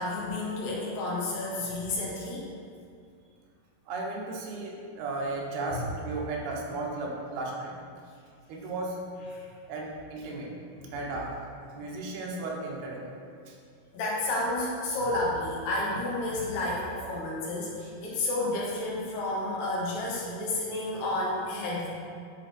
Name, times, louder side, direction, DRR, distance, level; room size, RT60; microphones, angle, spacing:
voice 1, 0.0-2.5 5.7-5.8 9.3-9.4 10.8-10.9 13.9-21.9, left 2 dB, 70° left, -5 dB, 2.8 m, -31 dB
voice 2, 3.9-7.7 8.5-9.0 9.7-10.5 10.9-11.4 11.7-13.2 13.5-13.6 16.3-16.4, right 2 dB, 90° right, -2 dB, 3.0 m, -35 dB
9.5 x 4.0 x 4.2 m, 2.2 s
omnidirectional pair, 4.4 m